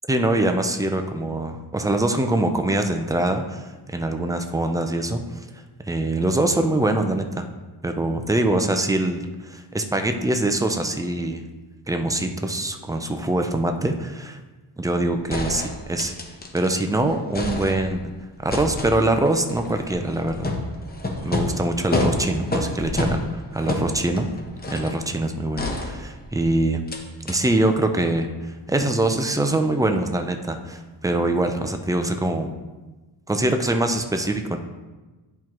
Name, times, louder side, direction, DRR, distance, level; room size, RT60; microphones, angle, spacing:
voice 1, 0.1-5.4 5.8-7.5 7.8-11.4 11.9-14.4 14.8-16.1 16.5-18.1 18.4-20.5 21.2-23.2 23.5-24.3 24.7-26.8 27.3-32.5 33.3-34.6, right 1 dB, 10° right, 5 dB, 0.4 m, -23 dB
sound 1, 14.8-14.9 15.3-16.9 17.1-18.1 18.5-25.0 25.6-26.4 26.9-27.0 27.3-27.4, left 2 dB, 20° left, 0.8 m, -29 dB
10.5 x 4.6 x 3.0 m, 1.2 s
wide cardioid pair, 140°, 42 cm